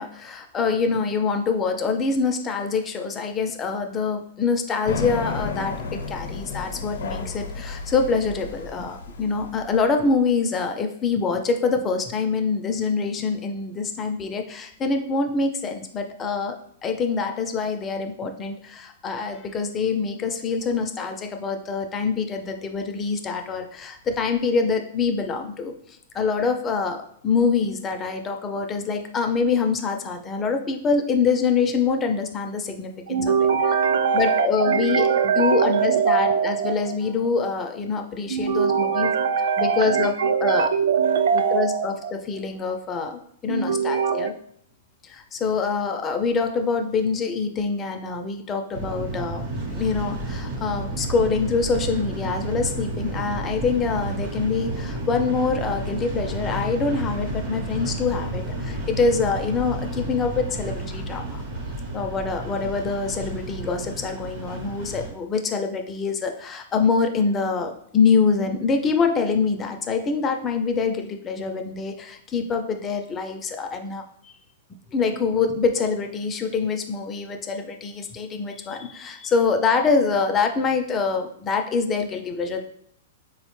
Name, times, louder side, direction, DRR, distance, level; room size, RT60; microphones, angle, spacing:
voice 1, 0.0-16.5 16.8-25.7 26.1-33.2 34.1-35.1 35.4-39.1 39.6-40.1 40.4-40.7 41.5-41.9 42.3-44.3 45.0-49.4 49.7-61.4 61.9-74.3 74.9-82.6, left 5 dB, 15° left, 5 dB, 0.3 m, -25 dB
sound 1, 4.8-10.2, left 4 dB, 85° left, 0.5 m, -33 dB
voice 2, 33.1-37.0 38.3-42.4 43.5-44.3, right 6 dB, 75° right, 10 dB, 0.3 m, -22 dB
sound 2, 48.7-65.1, right 1 dB, 50° right, 0.8 m, -31 dB
4.3 x 2.1 x 3.0 m, 0.67 s
hypercardioid pair, 160°, 0 cm